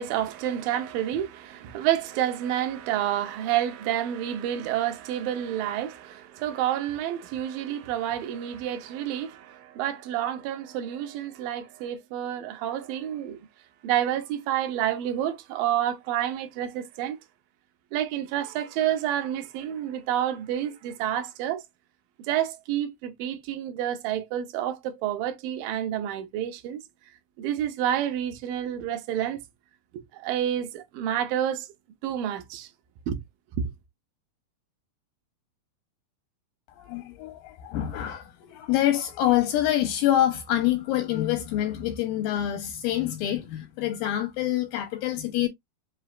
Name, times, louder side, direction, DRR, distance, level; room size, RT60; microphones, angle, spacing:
voice 1, 0.0-13.4 13.8-17.2 17.9-21.6 22.3-26.8 27.4-29.4 29.9-31.7 32.0-32.7 33.1-33.2, right 11 dB, 75° right, 2.2 m, -29 dB
voice 2, 36.8-45.5, left 12 dB, 80° left, 2.1 m, -26 dB
5.9 x 3.0 x 2.3 m
omnidirectional pair, 4.5 m